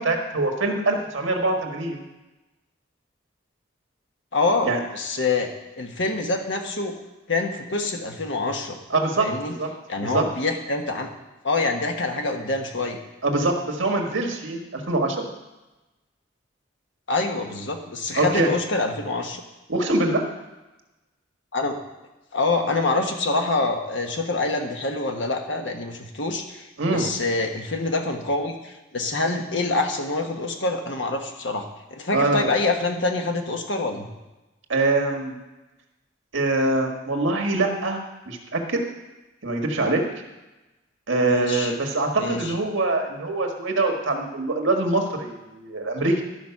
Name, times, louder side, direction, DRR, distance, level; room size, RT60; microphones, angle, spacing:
voice 1, 0.0-2.0 4.6-4.8 8.9-9.7 10.0-10.3 13.2-15.3 18.2-18.5 19.7-20.2 26.8-27.1 32.1-32.5 34.7-35.3 36.3-38.8 39.4-40.0 41.1-46.2, right 2 dB, 80° right, 2 dB, 1.6 m, -24 dB
voice 2, 4.3-5.5 5.8-6.9 7.3-8.8 9.2-9.6 9.9-11.1 11.4-13.0 17.1-19.4 21.5-21.7 22.3-34.1 41.2-41.7 42.2-42.5, left 3 dB, 70° left, 3 dB, 1.2 m, -26 dB
12.5 x 5.1 x 5.8 m, 1.1 s
head